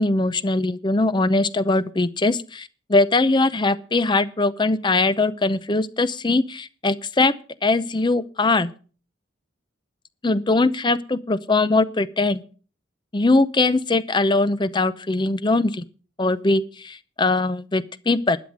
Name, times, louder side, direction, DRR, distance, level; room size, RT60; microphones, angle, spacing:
voice 1, 0.0-7.3 7.6-8.7 10.2-12.4 13.1-15.8 16.2-18.4, left 2 dB, 25° left, 15 dB, 0.7 m, -21 dB
12.0 x 8.0 x 7.3 m, 0.39 s
head